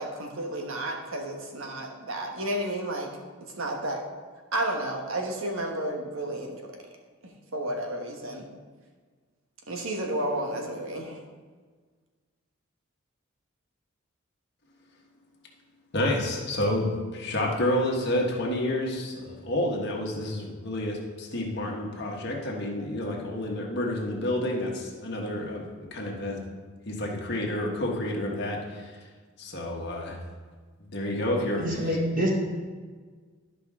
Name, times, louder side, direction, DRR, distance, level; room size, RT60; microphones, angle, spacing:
voice 1, 0.0-3.1 3.4-4.0 4.5-6.6 7.2-8.5 9.7-11.2, right 1 dB, 75° right, 2 dB, 1.3 m, -32 dB
voice 2, 15.9-26.4 26.8-28.9 29.4-30.2 30.9-32.3, left 1 dB, 50° left, -2 dB, 1.5 m, -29 dB
voice 3, 31.6-32.3, equal, 40° right, -1 dB, 1.5 m, -26 dB
12.5 x 5.4 x 3.7 m, 1.5 s
head